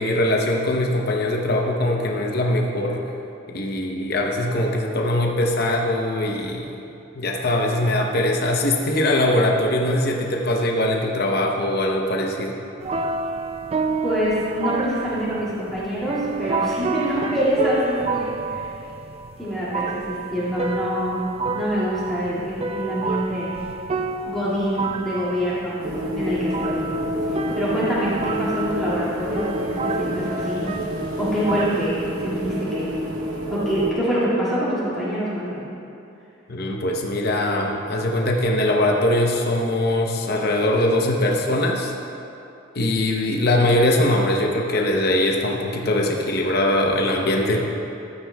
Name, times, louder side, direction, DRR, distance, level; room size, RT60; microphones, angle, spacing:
voice 1, 0.0-3.0 3.5-6.7 7.1-12.6 36.5-41.9 42.7-47.6, left 1 dB, 50° left, 0 dB, 0.7 m, -21 dB
sound 1, 12.8-31.8, right 4 dB, 30° right, 0.3 m, -30 dB
voice 2, 14.0-18.7 19.4-21.2 21.5-23.5 24.3-25.8 26.1-26.8 27.3-30.8 31.2-32.9 33.3-35.7, equal, ahead, -11 dB, 2.0 m, -25 dB
sound 2, 25.8-33.9, equal, 85° right, 0.9 m, -28 dB
13.0 x 9.0 x 2.2 m, 2.7 s
head